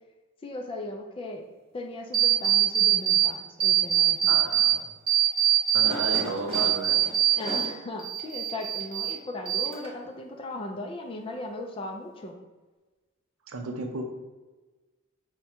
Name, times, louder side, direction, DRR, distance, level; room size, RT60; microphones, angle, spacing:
voice 1, 0.4-1.4 1.7-4.5 5.8-6.2 7.4-12.4, left 2 dB, 25° left, 3 dB, 0.3 m, -37 dB
sound 1, 2.1-3.3 3.6-4.7 5.1-7.7 8.0-9.1 9.5-10.1, right 11 dB, 25° right, 1.1 m, -23 dB
voice 2, 4.3-4.9 5.7-7.0 13.5-14.0, right 3 dB, 70° right, 4 dB, 0.5 m, -34 dB
4.8 x 2.2 x 4.3 m, 1.2 s
head